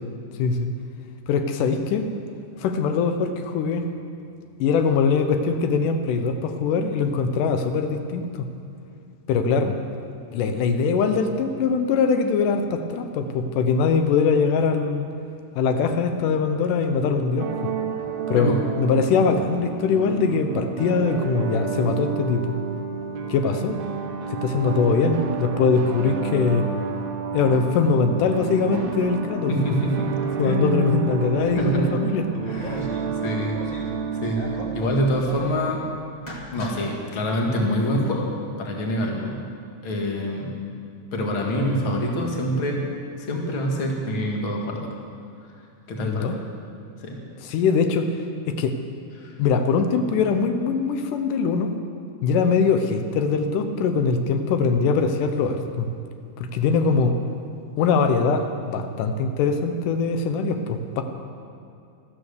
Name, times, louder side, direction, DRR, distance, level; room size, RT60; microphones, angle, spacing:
voice 1, 1.3-2.1 2.6-3.9 4.6-8.5 9.3-9.8 10.3-15.1 15.6-17.5 18.3-22.6 23.3-23.8 24.3-26.7 27.3-29.5 30.4-32.2 46.0-46.4 47.4-48.1 48.5-48.7 49.4-51.7 52.2-55.9 56.4-57.2 57.8-61.0, left 5 dB, 90° left, 6 dB, 2.5 m, -22 dB
sound 1, 17.4-34.8, right 6 dB, 65° right, 2.1 m, -30 dB
voice 2, 29.5-30.1 30.4-30.8 31.6-31.8 32.4-32.9 33.2-33.6 34.2-34.4 34.7-35.8 36.5-38.3 38.6-39.4 39.8-40.5 41.1-42.8 43.3-44.9 45.9-46.4 47.0-47.2 49.2-49.3, equal, 45° left, 0 dB, 2.3 m, -25 dB
sound 2, 31.3-31.8 32.5-33.0 33.5-34.0 34.2-35.5 36.1-36.9, equal, 20° left, 1.2 m, -38 dB
14.0 x 13.0 x 6.6 m, 2.5 s
omnidirectional pair, 3.6 m